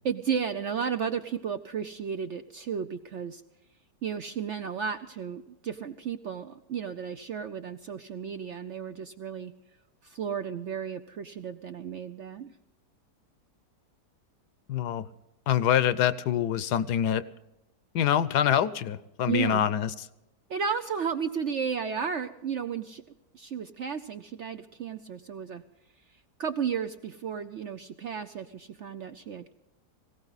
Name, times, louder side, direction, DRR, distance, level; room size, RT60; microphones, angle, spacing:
voice 1, 0.0-3.4 4.0-9.5 10.0-12.5 19.3-19.7 20.5-23.0 23.3-25.6 26.4-29.5, right 7 dB, 60° right, 9 dB, 0.7 m, -33 dB
voice 2, 14.7-15.0 15.5-17.2 17.9-19.9, left 10 dB, 75° left, 15 dB, 1.3 m, -25 dB
19.5 x 17.0 x 4.0 m, 0.95 s
omnidirectional pair, 1.8 m